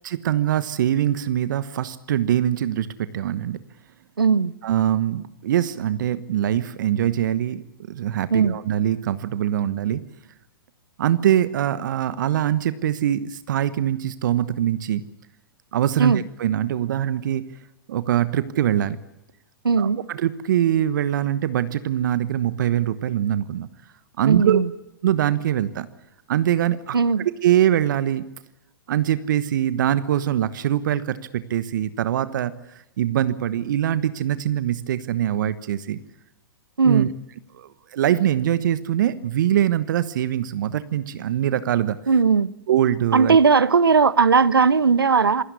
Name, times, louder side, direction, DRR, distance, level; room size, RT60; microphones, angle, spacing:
voice 1, 0.0-3.6 4.6-10.0 11.0-15.0 15.7-17.4 17.9-19.0 19.8-23.7 24.2-24.6 25.0-25.9 26.3-28.2 28.9-32.5 33.0-36.0 36.8-37.1 37.5-42.0 42.7-43.4, right 11 dB, 60° right, 1.2 m, -23 dB
voice 2, 4.2-4.5 8.3-8.6 16.0-16.2 19.6-20.0 24.3-24.7 26.9-27.3 36.8-37.1 42.1-42.5 43.1-45.4, right 5 dB, 80° right, 1.0 m, -18 dB
26.5 x 17.5 x 8.3 m
figure-of-eight pair, 115°, 12 cm